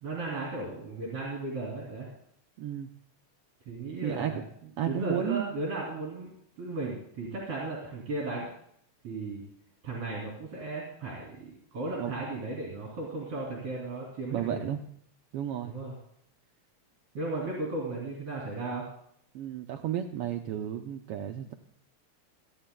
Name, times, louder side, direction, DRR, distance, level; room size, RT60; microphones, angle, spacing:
voice 1, 0.0-2.1 3.7-4.4 4.8-6.3 6.6-8.5 9.0-9.4 9.8-14.6 15.6-15.9 17.1-18.9, right 2 dB, 55° right, -5 dB, 4.1 m, -35 dB
voice 2, 2.6-2.9 4.0-4.4 4.8-5.5 11.9-12.1 14.3-14.8 15.3-15.8 19.3-21.5, right 10 dB, 80° right, 5 dB, 1.3 m, -33 dB
28.5 x 9.8 x 2.3 m, 0.68 s
omnidirectional pair, 3.3 m